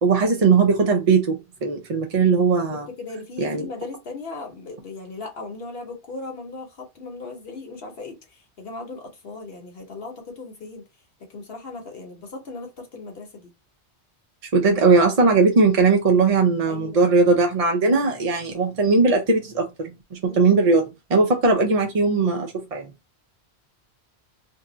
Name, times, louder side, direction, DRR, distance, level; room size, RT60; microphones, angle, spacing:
voice 1, 0.0-2.8 3.4-3.7 14.5-20.8 21.1-22.9, right 4 dB, 45° right, 0.5 m, -19 dB
voice 2, 2.7-10.8 11.3-13.5 16.7-17.1 20.2-20.6, left 3 dB, 65° left, 1.0 m, -37 dB
2.7 x 2.2 x 3.7 m
omnidirectional pair, 1.1 m